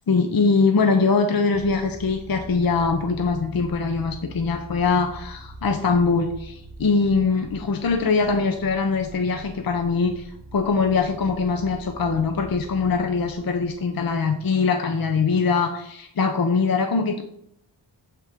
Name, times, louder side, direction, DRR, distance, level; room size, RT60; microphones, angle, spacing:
voice 1, 0.1-10.3 10.5-17.2, left 4 dB, 50° left, 6 dB, 0.8 m, -22 dB
sound 1, 1.5-15.0, right 1 dB, 25° right, 1.3 m, -43 dB
7.9 x 3.8 x 4.6 m, 0.73 s
cardioid pair, 55°, 45 cm